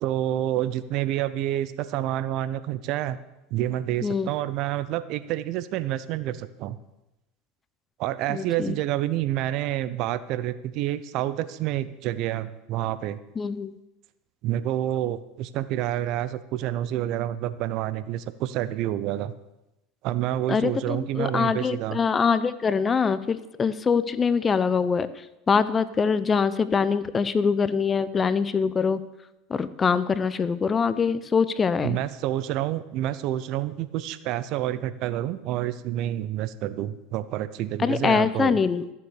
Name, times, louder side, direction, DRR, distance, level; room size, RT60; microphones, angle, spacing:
voice 1, 0.0-3.2 3.5-6.8 8.0-13.2 14.4-19.3 20.0-22.0 31.8-38.6, right 13 dB, 60° right, 15 dB, 0.7 m, -28 dB
voice 2, 8.3-8.7 13.4-13.7 20.5-25.1 25.5-29.0 29.5-32.0 37.8-38.9, left 5 dB, 25° left, 15 dB, 0.7 m, -24 dB
14.5 x 7.1 x 6.6 m, 0.93 s
hypercardioid pair, 90°, 0 cm